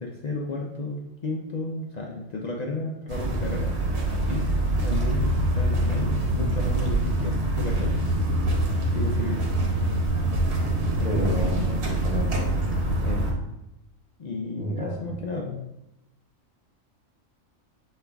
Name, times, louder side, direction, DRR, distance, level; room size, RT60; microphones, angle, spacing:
voice 1, 0.0-3.7 4.2-4.5 4.8-8.0 8.9-9.4 11.0-11.9 13.0-13.3 14.2-15.6, left 3 dB, 85° left, -1 dB, 0.3 m, -33 dB
sound 1, 3.1-13.3, right 1 dB, 55° right, 1.2 m, -25 dB
voice 2, 11.0-12.5 14.6-15.2, equal, 5° right, -4 dB, 0.8 m, -31 dB
6.6 x 2.4 x 3.3 m, 0.88 s
omnidirectional pair, 1.4 m